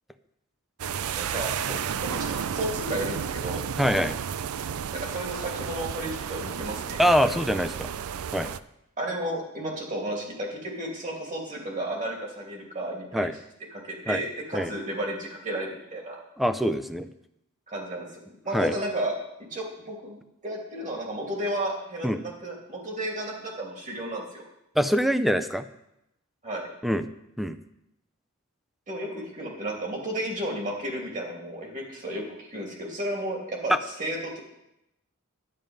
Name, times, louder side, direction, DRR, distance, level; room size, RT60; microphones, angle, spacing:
sound 1, 0.8-8.6, right 8 dB, 85° right, 0.4 m, -32 dB
voice 1, 1.1-3.7 4.9-7.0 9.0-13.3 13.7-16.2 17.7-19.1 19.5-20.2 20.4-24.4 26.4-26.7 28.9-34.4, right 1 dB, 35° right, -1 dB, 2.8 m, -33 dB
voice 2, 3.8-4.1 7.0-7.9 8.3-8.5 13.1-13.3 14.1-14.2 14.5-14.7 16.4-17.1 18.5-18.7 22.0-22.2 24.8-25.6 26.8-27.1 27.4-27.6 33.7-33.8, equal, ahead, 11 dB, 0.5 m, -24 dB
11.0 x 9.0 x 5.2 m, 0.85 s
head